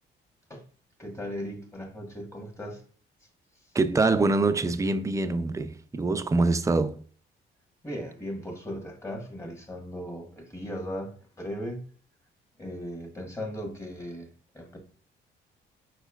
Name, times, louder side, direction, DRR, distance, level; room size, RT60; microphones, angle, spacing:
voice 1, 1.0-2.8 7.8-11.8 12.6-14.3 14.5-14.8, equal, 15° left, 1.3 m, -37 dB
voice 2, 3.7-7.0, right 3 dB, 15° right, 0.4 m, -24 dB
4.5 x 4.3 x 2.3 m
cardioid pair, 90°, 20 cm